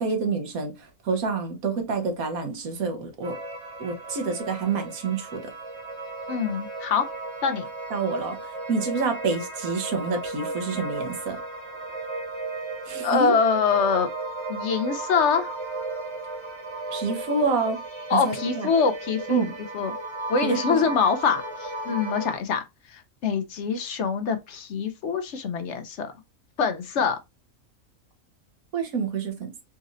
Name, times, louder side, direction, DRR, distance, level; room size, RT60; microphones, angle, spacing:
voice 1, 0.0-3.4 3.8-5.4 7.9-11.4 12.9-13.3 16.9-17.8 18.1-18.7 19.3-19.5 20.7-20.9 28.7-29.5, right 4 dB, 75° right, 1.4 m, -28 dB
Digital Highway, 3.2-22.4, right 2 dB, 25° right, 0.7 m, -35 dB
voice 2, 6.3-7.1 7.4-7.6 13.0-14.1 14.5-15.5 18.1-19.4 19.7-19.9 20.3-22.6 22.9-26.1 26.6-27.2, left 5 dB, 65° left, 0.8 m, -24 dB
4.0 x 2.6 x 3.7 m
omnidirectional pair, 1.5 m